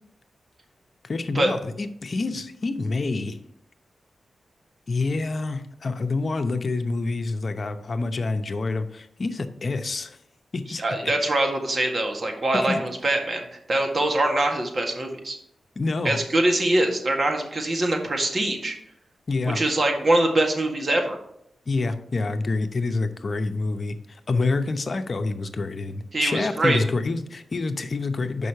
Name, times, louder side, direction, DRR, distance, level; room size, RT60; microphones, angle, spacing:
voice 1, 1.0-3.4 4.9-10.2 10.5-11.1 12.6-12.8 15.8-16.2 19.3-19.6 21.7-28.5, left 3 dB, 55° left, 8 dB, 0.8 m, -27 dB
voice 2, 10.8-15.4 16.0-18.7 19.4-21.2 26.1-26.8, right 1 dB, 50° right, 3 dB, 1.7 m, -23 dB
6.3 x 5.4 x 5.7 m, 0.75 s
cardioid pair, 55°, 0 cm